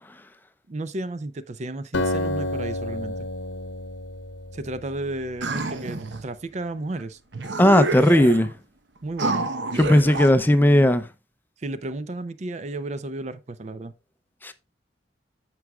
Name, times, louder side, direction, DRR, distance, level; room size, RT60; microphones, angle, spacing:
voice 1, 0.7-3.3 4.5-7.2 9.0-9.5 11.6-13.9, right 2 dB, 40° right, 0.5 m, -33 dB
Acoustic guitar, 1.9-5.5, left 1 dB, 80° left, 0.9 m, -30 dB
sound 1, 5.4-6.3 7.0-7.1 7.3-8.5 9.2-10.3, right 2 dB, 75° right, 1.0 m, -28 dB
voice 2, 7.6-8.5 9.8-11.0 14.4-14.5, equal, 10° left, 0.5 m, -17 dB
14.0 x 4.8 x 2.3 m
head